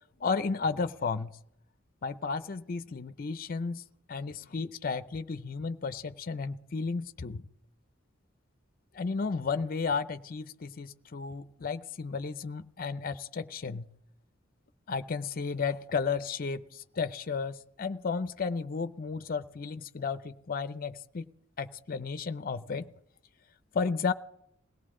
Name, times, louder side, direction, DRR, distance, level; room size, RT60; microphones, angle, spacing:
voice 1, 0.2-1.3 2.0-3.8 4.1-7.4 8.9-13.9 14.9-21.3 21.6-22.9 23.7-24.1, left 5 dB, 45° left, 12 dB, 0.5 m, -33 dB
21.5 x 17.0 x 3.7 m, 0.76 s
head